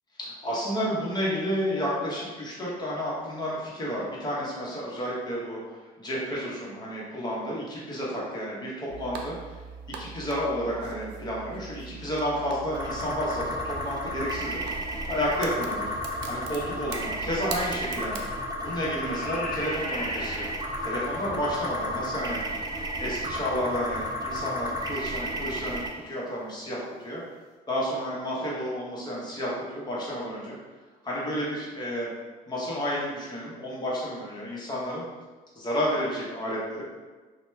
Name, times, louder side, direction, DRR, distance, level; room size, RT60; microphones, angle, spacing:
voice 1, 0.2-5.6 6.0-9.6 9.9-14.6 15.1-15.8 16.3-18.2 18.6-20.4 20.8-22.4 23.0-27.2 27.7-30.6 31.0-32.1 32.5-35.0 35.5-36.8, equal, 25° left, -6 dB, 1.0 m, -31 dB
sound 1, 8.9-18.4, right 5 dB, 85° right, 0.4 m, -42 dB
sound 2, 12.7-25.9, equal, 25° right, 0.4 m, -33 dB
sound 3, 18.1-18.4 18.7-21.4 23.2-23.3 23.9-24.0 24.9-25.2 25.5-25.7 26.0-26.1, left 2 dB, 65° left, 0.9 m, -40 dB
2.8 x 2.2 x 3.3 m, 1.3 s
cardioid pair, 110°, 17 cm